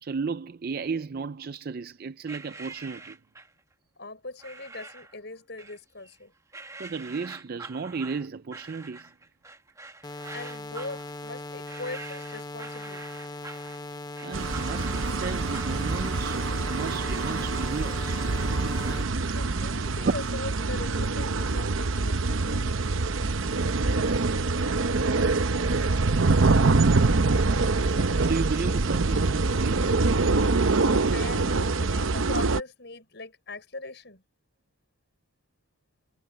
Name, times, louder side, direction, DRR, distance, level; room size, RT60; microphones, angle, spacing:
voice 1, 0.0-3.2 6.8-9.1 10.2-10.4 14.2-18.2 19.6-19.7 20.0-20.1 21.6-21.8 28.2-30.0, right 4 dB, 50° right, 0.4 m, -34 dB
sound 1, 2.3-3.6 4.4-5.2 5.6-6.2 6.5-15.8, right 3 dB, 15° right, 1.1 m, -45 dB
voice 2, 4.0-6.3 10.3-13.1 19.3-22.7 31.1-34.2, left 2 dB, 60° left, 6.4 m, -40 dB
sound 2, 10.0-19.0, left 2 dB, 20° left, 0.8 m, -39 dB
sound 3, 14.3-32.6, right 3 dB, 80° right, 0.8 m, -25 dB
head